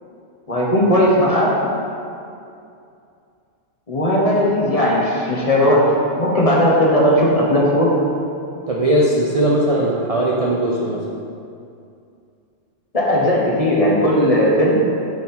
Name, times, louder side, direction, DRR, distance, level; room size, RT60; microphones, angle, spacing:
voice 1, 0.5-1.5 3.9-5.9 6.2-7.9 12.9-14.8, equal, 30° left, -4 dB, 1.0 m, -16 dB
voice 2, 8.7-11.1, right 1 dB, 40° right, -3 dB, 0.5 m, -19 dB
8.3 x 4.1 x 4.3 m, 2.5 s
omnidirectional pair, 1.3 m